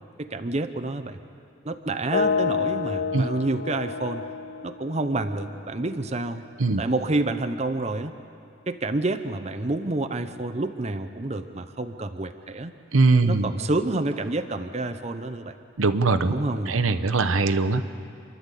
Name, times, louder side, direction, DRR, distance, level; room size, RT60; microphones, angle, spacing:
voice 1, 0.2-1.2 1.6-4.2 4.6-6.4 6.8-8.1 8.7-12.7 13.3-15.5 16.3-16.8, right 2 dB, 30° right, 8 dB, 0.7 m, -28 dB
sound 1, 2.1-6.0, left 6 dB, 45° left, 0.4 m, -29 dB
voice 2, 12.9-13.5 15.8-16.4 16.7-18.1, right 3 dB, 90° right, 10 dB, 0.9 m, -21 dB
28.5 x 11.5 x 8.3 m, 2.5 s
head